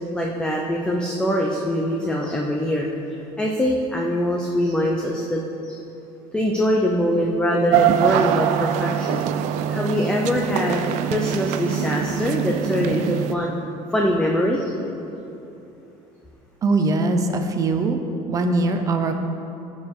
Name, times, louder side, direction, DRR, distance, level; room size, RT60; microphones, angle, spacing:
voice 1, 0.1-5.4 5.7-5.8 6.3-9.3 9.7-13.5 13.9-14.7, equal, 5° left, -1 dB, 0.7 m, -23 dB
sound 1, 7.7-13.3, right 10 dB, 70° right, 0.5 m, -23 dB
voice 2, 16.6-18.0 18.3-19.2, right 3 dB, 30° right, 6 dB, 0.8 m, -21 dB
15.5 x 5.4 x 5.5 m, 2.9 s
cardioid pair, 160°, 12 cm